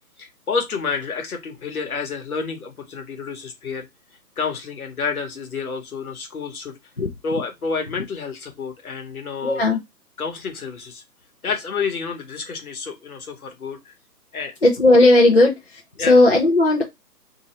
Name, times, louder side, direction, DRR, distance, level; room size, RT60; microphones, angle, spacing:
voice 1, 0.2-3.9 4.4-6.7 7.2-9.6 10.2-11.0 11.4-13.9 14.3-14.5 16.0-16.2, left 5 dB, 60° left, 1.2 m, -29 dB
voice 2, 9.4-9.8 14.6-15.5 16.0-16.8, left 2 dB, 40° left, 0.5 m, -15 dB
2.8 x 2.6 x 3.1 m
hypercardioid pair, 170°, 49 cm